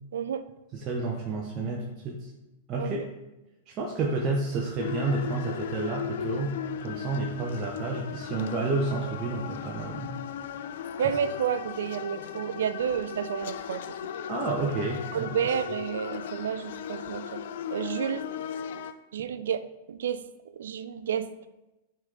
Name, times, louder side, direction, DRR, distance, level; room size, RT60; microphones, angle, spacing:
voice 1, 0.1-0.4 2.8-3.0 11.0-13.8 15.1-17.4 17.7-18.3 19.1-20.2 20.5-21.3, right 8 dB, 70° right, 13 dB, 0.4 m, -30 dB
voice 2, 0.7-2.3 2.7-3.0 3.7-6.6 6.8-10.2 14.3-15.3, right 3 dB, 35° right, -2 dB, 0.9 m, -30 dB
sound 1, 4.8-18.9, left 8 dB, 65° left, 0.3 m, -37 dB
7.1 x 4.1 x 3.7 m, 0.99 s
hypercardioid pair, 105°, 0 cm